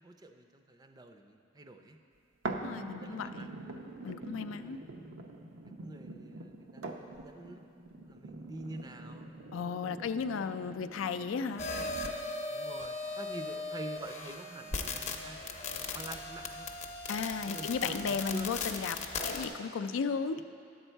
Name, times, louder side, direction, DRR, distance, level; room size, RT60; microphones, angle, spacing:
voice 1, 0.0-2.0 2.7-3.6 4.6-4.8 5.8-9.3 12.5-16.7 17.3-18.5 20.4-20.5, right 2 dB, 20° right, 6 dB, 0.4 m, -47 dB
sound 1, 2.4-12.4 13.0-13.1, right 2 dB, 85° right, 0.6 m, -44 dB
voice 2, 2.6-3.5 4.0-4.8 9.5-11.6 17.1-20.4, left 5 dB, 85° left, 10 dB, 0.4 m, -35 dB
sound 2, 11.6-19.5, left 3 dB, 35° left, 0.6 m, -38 dB
10.0 x 8.0 x 4.5 m, 2.6 s
head